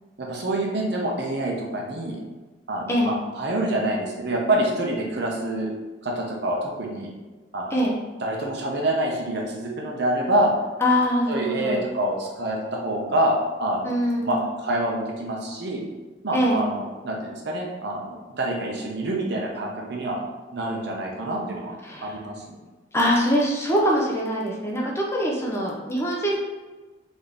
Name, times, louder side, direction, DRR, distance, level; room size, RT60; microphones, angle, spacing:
voice 1, 0.2-2.2 2.7-5.7 6.0-7.1 7.5-7.9 8.2-10.5 11.3-13.3 13.6-13.9 14.2-15.8 16.2-20.2 20.5-21.8 22.0-22.6, right 1 dB, 60° right, -1 dB, 0.8 m, -26 dB
voice 2, 10.8-11.8 13.8-14.4 16.3-16.6 21.8-22.2 22.9-26.4, equal, 15° left, -3 dB, 0.6 m, -23 dB
4.0 x 2.9 x 3.4 m, 1.2 s
head